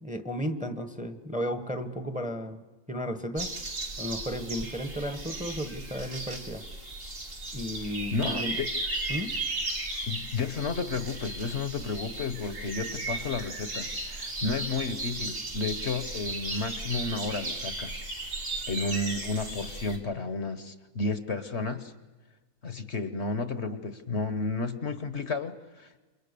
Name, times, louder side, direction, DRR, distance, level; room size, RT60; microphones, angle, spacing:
voice 1, 0.0-2.6 2.9-3.5 4.0-6.7 7.5-8.6 9.1-9.3, equal, 5° right, 9 dB, 1.2 m, -34 dB
sound 1, 3.4-20.0, right 2 dB, 65° right, 3.4 m, -36 dB
voice 2, 8.1-8.7 10.1-18.0 18.7-21.9 22.6-26.0, left 3 dB, 55° left, 12 dB, 1.3 m, -32 dB
28.5 x 23.5 x 6.8 m, 1.2 s
omnidirectional pair, 1.5 m